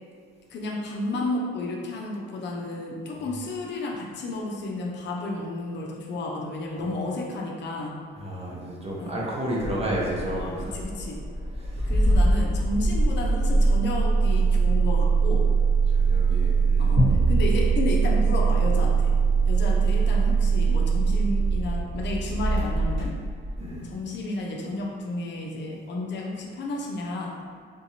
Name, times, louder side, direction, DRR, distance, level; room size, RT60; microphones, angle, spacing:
voice 1, 0.5-8.0 9.0-9.2 10.3-11.2 11.8-15.5 16.8-19.1 19.5-23.1 23.8-27.4, left 2 dB, 65° left, -1 dB, 0.6 m, -32 dB
voice 2, 8.2-10.8 11.6-11.9 15.9-17.0 23.6-23.9, right 1 dB, 30° right, -4 dB, 0.9 m, -32 dB
Engine starting, 9.6-23.7, right 4 dB, 75° right, 1.1 m, -22 dB
sound 1, 17.0-19.5, equal, 35° left, 1.0 m, -27 dB
3.6 x 2.6 x 2.8 m, 2.1 s
cardioid pair, 90°, 20 cm